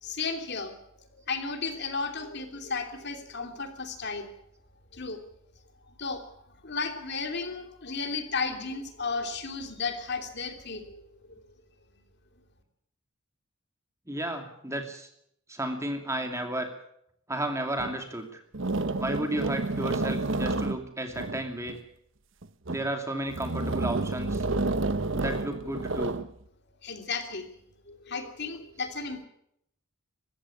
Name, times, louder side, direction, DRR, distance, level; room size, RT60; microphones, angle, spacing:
voice 1, 0.0-4.3 4.9-5.2 5.9-6.3 6.6-11.4 26.8-27.5 27.9-29.2, left 4 dB, 50° left, 6 dB, 3.0 m, -34 dB
voice 2, 14.1-15.1 15.5-16.7 17.3-18.4 19.0-21.8 22.7-24.4 25.1-26.2, right 1 dB, 15° right, 5 dB, 2.6 m, -33 dB
sound 1, 17.8-17.9 18.5-21.8 22.4-22.9 23.3-26.3, right 2 dB, 60° right, 1.0 m, -30 dB
22.5 x 15.0 x 8.5 m, 0.73 s
head